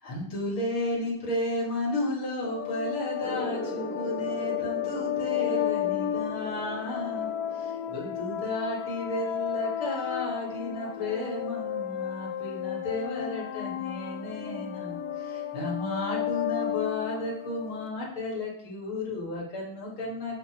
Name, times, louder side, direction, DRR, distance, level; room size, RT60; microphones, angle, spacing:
voice 1, 0.0-20.4, left 1 dB, 45° left, -4 dB, 2.2 m, -33 dB
sound 1, 2.4-17.9, left 11 dB, 80° left, 1.8 m, -33 dB
sound 2, 3.2-10.4, left 1 dB, 10° left, 1.1 m, -40 dB
7.1 x 6.8 x 2.9 m, 0.72 s
omnidirectional pair, 3.6 m